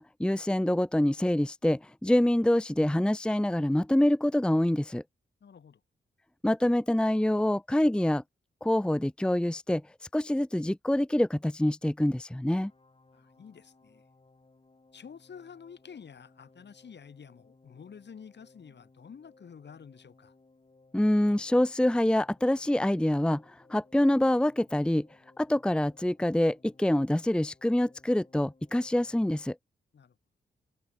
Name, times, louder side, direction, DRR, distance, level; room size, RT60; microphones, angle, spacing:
voice 1, 0.0-5.0 6.4-8.2 8.6-9.8 10.1-12.7 20.9-23.4 23.7-25.1 25.4-29.5, left 1 dB, 5° left, 0.7 m, -26 dB
voice 2, 5.4-5.8 13.1-14.0 14.9-20.3 29.9-30.1, left 7 dB, 65° left, 4.5 m, -49 dB
sound 1, 12.6-29.4, left 3 dB, 30° left, 7.9 m, -62 dB
cardioid pair, 60°, 19 cm